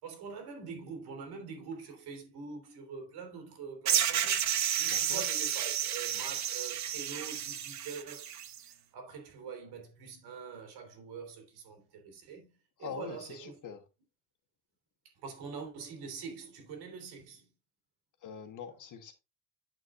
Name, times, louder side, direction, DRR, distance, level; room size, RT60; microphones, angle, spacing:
voice 1, 0.0-4.5 4.8-8.3 8.6-13.6 15.2-17.5, right 5 dB, 80° right, 3.6 m, -44 dB
sound 1, 3.9-8.6, right 10 dB, 45° right, 0.7 m, -31 dB
voice 2, 4.8-5.2 12.8-13.8 18.2-19.1, left 7 dB, 50° left, 1.4 m, -43 dB
8.9 x 6.8 x 2.5 m
cardioid pair, 145°, 38 cm